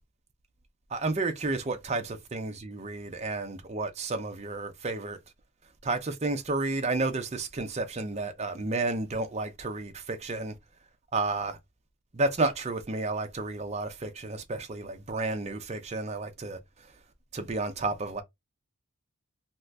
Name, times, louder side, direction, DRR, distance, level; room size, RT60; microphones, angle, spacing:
voice 1, 0.9-5.2 5.8-10.6 11.1-11.6 12.1-16.6 17.3-18.2, right 3 dB, 30° right, 0.5 m, -31 dB
2.7 x 2.4 x 3.3 m
head